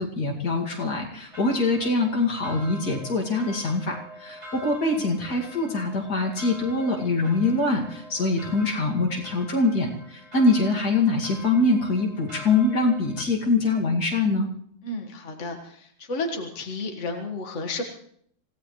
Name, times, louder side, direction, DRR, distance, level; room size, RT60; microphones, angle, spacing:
voice 1, 0.0-14.5, left 3 dB, 80° left, -1 dB, 2.9 m, -24 dB
sound 1, 1.3-13.2, equal, 25° right, 3.3 m, -45 dB
voice 2, 14.8-17.8, left 2 dB, 50° left, 2 dB, 2.0 m, -32 dB
26.5 x 16.5 x 3.2 m, 0.63 s
omnidirectional pair, 1.7 m